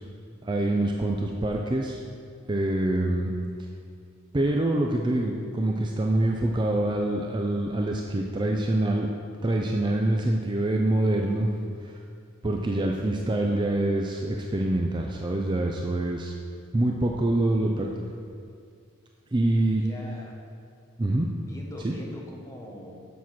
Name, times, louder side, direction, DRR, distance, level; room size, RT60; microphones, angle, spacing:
voice 1, 0.4-2.0 2.5-3.3 4.3-9.1 9.4-11.5 11.8-12.0 12.4-16.3 16.7-17.9 19.3-19.8 21.0-21.3 21.8-21.9, right 1 dB, 20° right, 1 dB, 0.4 m, -25 dB
voice 2, 19.7-20.3 21.4-23.1, left 1 dB, 15° left, -1 dB, 0.9 m, -42 dB
7.3 x 6.1 x 5.8 m, 2.3 s
head